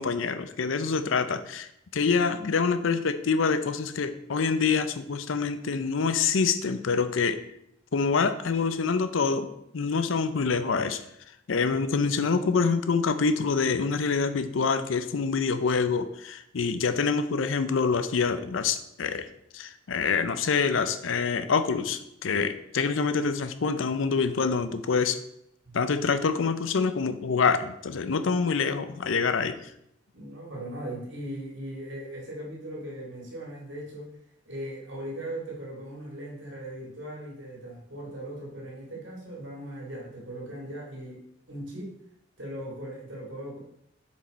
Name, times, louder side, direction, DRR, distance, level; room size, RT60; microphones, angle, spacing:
voice 1, 0.0-7.4 7.9-9.5 9.7-11.0 11.5-19.3 19.5-25.2 25.7-29.6, left 5 dB, 80° left, 11 dB, 0.5 m, -26 dB
voice 2, 30.1-34.1 34.5-41.2 41.5-41.9 42.4-43.6, right 1 dB, 65° right, -2 dB, 2.3 m, -38 dB
7.4 x 4.7 x 4.1 m, 0.77 s
head